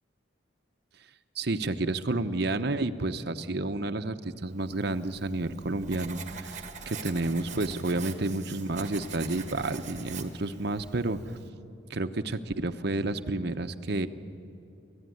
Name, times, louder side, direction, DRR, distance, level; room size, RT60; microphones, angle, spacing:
voice 1, 1.4-11.4 11.9-14.1, right 2 dB, 55° right, 9 dB, 0.9 m, -30 dB
Writing, 4.8-11.5, right 7 dB, 40° right, 1.5 m, -44 dB
sound 1, 6.2-11.2, equal, 20° left, 3.1 m, -55 dB
29.5 x 14.5 x 9.4 m, 2.7 s
head